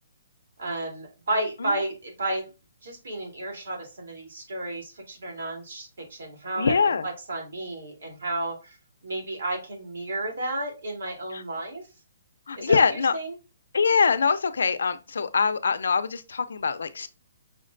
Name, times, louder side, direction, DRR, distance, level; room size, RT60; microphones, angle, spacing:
voice 1, 0.6-2.5 2.8-8.8 9.0-11.8 12.6-13.3, right 1 dB, 75° right, 2.0 m, -32 dB
voice 2, 6.6-7.1 11.3-11.4 12.5-13.1 13.7-17.1, left 5 dB, 85° left, 0.4 m, -23 dB
5.6 x 2.1 x 2.5 m
hypercardioid pair, 175°, 0 cm